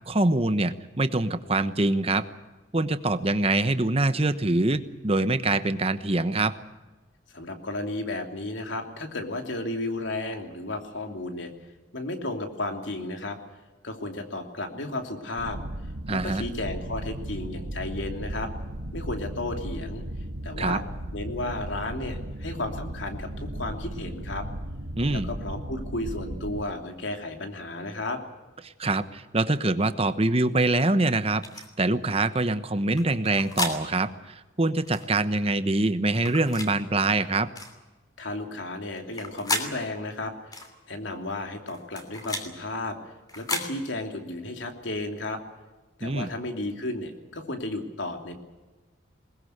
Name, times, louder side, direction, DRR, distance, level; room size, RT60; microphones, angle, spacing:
voice 1, 0.1-2.2 2.7-6.6 16.1-16.4 20.6-20.8 25.0-25.3 28.8-37.5 46.0-46.3, right 2 dB, 30° right, 11 dB, 1.1 m, -24 dB
voice 2, 7.3-11.5 11.9-13.4 13.8-15.6 16.1-18.5 18.9-20.0 20.4-20.8 21.1-24.5 25.1-28.2 38.2-40.5 40.9-45.4 46.0-48.3, left 2 dB, 75° left, 4 dB, 3.0 m, -33 dB
sound 1, 15.4-26.6, right 1 dB, 80° right, 1.7 m, -36 dB
sound 2, 31.4-31.7 33.0-33.8 34.8-35.1 36.1-36.7 37.5-37.7 39.0-39.7 40.5-40.7 41.7-42.5 43.3-43.7, left 2 dB, 20° left, 2.9 m, -32 dB
21.5 x 20.5 x 8.0 m, 1.2 s
head